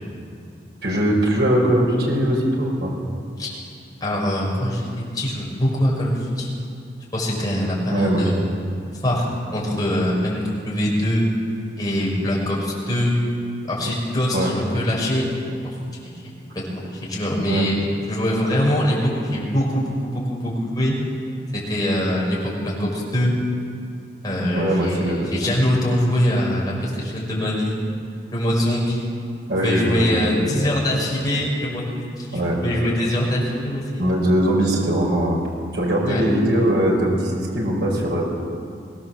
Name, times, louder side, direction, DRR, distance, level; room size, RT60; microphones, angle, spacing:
voice 1, 0.8-2.9 7.9-8.5 14.3-14.5 17.5-17.7 24.5-25.3 29.5-30.0 30.4-30.6 32.3-32.6 34.0-35.4 35.7-38.2, equal, 75° right, -2 dB, 5.2 m, -21 dB
voice 2, 4.0-6.6 7.1-8.5 9.0-11.3 11.8-13.2 13.7-15.3 16.0-17.8 18.1-20.9 21.5-23.3 24.2-27.8 28.3-29.1 29.5-34.1 36.1-36.2, equal, 25° left, -4 dB, 6.0 m, -23 dB
23.0 x 17.0 x 7.4 m, 2.4 s
head